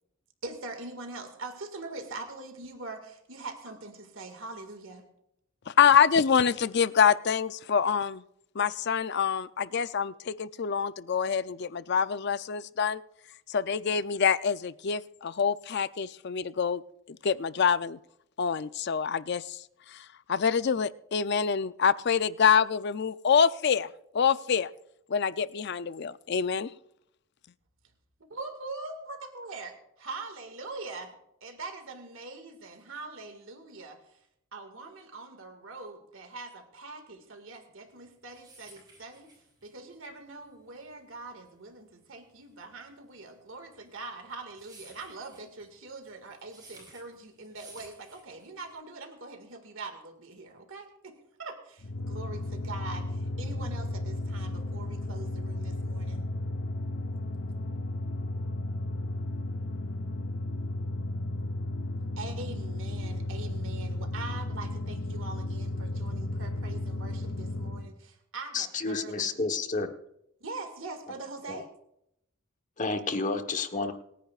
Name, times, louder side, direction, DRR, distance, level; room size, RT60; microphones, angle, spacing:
voice 1, 0.4-5.1 28.3-29.7 30.0-34.2 34.5-39.3 39.6-56.3 62.2-69.3 70.4-71.7, right 3 dB, 70° right, 5 dB, 2.0 m, -43 dB
voice 2, 5.7-8.2 8.6-13.0 13.5-16.8 17.1-18.0 18.4-19.6 19.9-23.9 24.1-24.7 25.1-26.7, left 7 dB, 50° left, 15 dB, 0.4 m, -26 dB
sound 1, 38.0-48.8, right 2 dB, 20° right, 5.7 m, -55 dB
sound 2, 51.8-67.9, left 1 dB, 70° left, 0.9 m, -34 dB
voice 3, 68.5-69.9 71.5-71.6 72.8-73.9, left 3 dB, 35° left, 7 dB, 1.1 m, -30 dB
27.5 x 10.0 x 2.4 m, 0.77 s
head